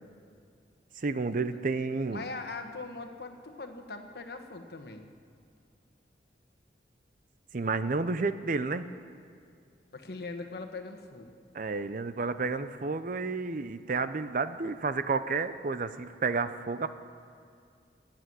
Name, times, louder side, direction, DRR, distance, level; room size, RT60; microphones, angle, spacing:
voice 1, 1.0-2.3 7.5-8.9 11.5-16.9, right 4 dB, 50° right, 12 dB, 0.6 m, -31 dB
voice 2, 2.1-5.1 9.9-11.4, left 3 dB, 60° left, 6 dB, 1.3 m, -41 dB
14.0 x 9.1 x 9.6 m, 2.4 s
head